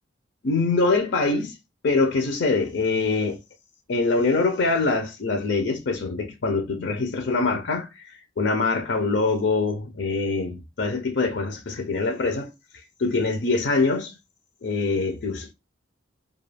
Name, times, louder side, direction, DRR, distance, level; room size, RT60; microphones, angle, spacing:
voice 1, 0.4-1.5 1.8-3.4 3.9-8.1 8.4-12.5 13.0-14.1 14.6-15.5, left 3 dB, 60° left, 0.5 m, -24 dB
2.3 x 2.2 x 3.2 m
head